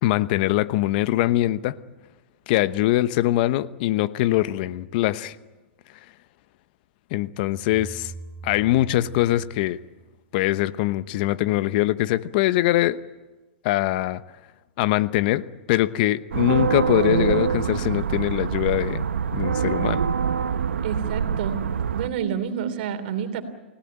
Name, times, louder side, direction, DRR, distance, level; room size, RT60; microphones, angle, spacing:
voice 1, 0.0-1.8 2.5-5.4 7.1-8.1 8.4-9.8 10.3-13.0 13.6-14.2 14.8-15.4 15.7-19.0 19.3-20.0, left 15 dB, 50° left, 0.9 m, -22 dB
sound 1, 7.5-10.4, right 3 dB, 25° right, 7.6 m, -42 dB
sound 2, 16.3-22.1, right 7 dB, 85° right, 1.0 m, -25 dB
voice 2, 16.4-16.7 20.8-21.6 21.9-23.4, right 8 dB, 55° right, 3.2 m, -29 dB
29.0 x 17.5 x 8.9 m
hypercardioid pair, 125°, 6 cm